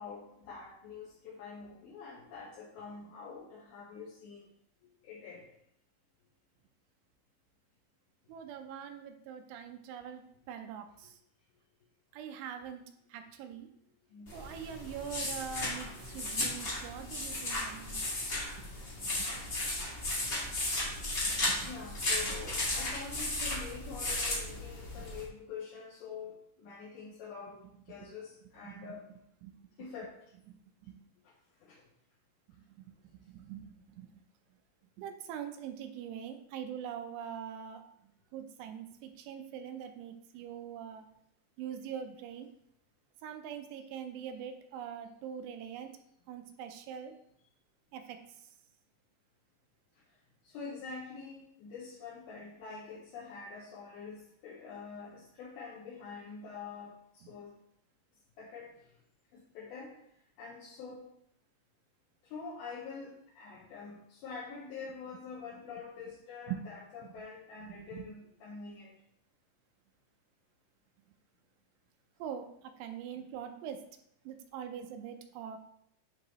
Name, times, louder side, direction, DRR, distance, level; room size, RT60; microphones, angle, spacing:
voice 1, 0.0-4.5 5.0-5.4 14.1-14.4 21.3-27.6 27.9-29.1 29.8-30.2 31.2-31.3 31.6-31.8 50.4-57.6 58.4-58.8 59.3-60.0 60.4-61.1 62.2-68.9, left 5 dB, 75° left, -6 dB, 2.7 m, -46 dB
voice 2, 8.3-11.2 12.1-12.8 13.1-13.7 14.3-18.1 19.0-19.3 21.3-21.7 22.2-22.4 25.0-25.1 28.0-28.1 28.6-29.0 29.4-29.5 30.5-30.6 30.9-31.0 32.7-32.9 33.1-34.1 35.0-37.8 38.3-41.0 41.6-42.5 43.2-45.9 46.3-47.1 47.9-48.2 57.2-57.3 66.5-66.6 67.0-67.1 67.7-68.1 72.2-73.8 74.3-75.6, right 8 dB, 85° right, 6 dB, 2.7 m, -43 dB
sound 1, 14.3-25.2, left 1 dB, 40° left, 1.3 m, -35 dB
10.5 x 3.8 x 3.0 m, 0.74 s
omnidirectional pair, 4.9 m